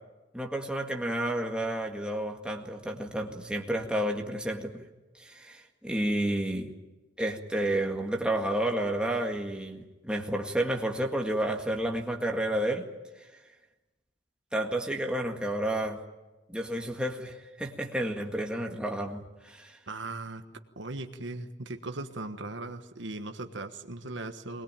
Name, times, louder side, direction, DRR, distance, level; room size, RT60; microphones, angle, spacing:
voice 1, 0.3-4.9 5.2-6.7 7.2-12.9 14.5-16.0 16.5-19.8, right 1 dB, 5° right, 1 dB, 1.9 m, -31 dB
voice 2, 19.9-20.4 20.8-24.6, right 2 dB, 65° right, 7 dB, 1.4 m, -38 dB
22.0 x 20.0 x 9.0 m, 1.1 s
head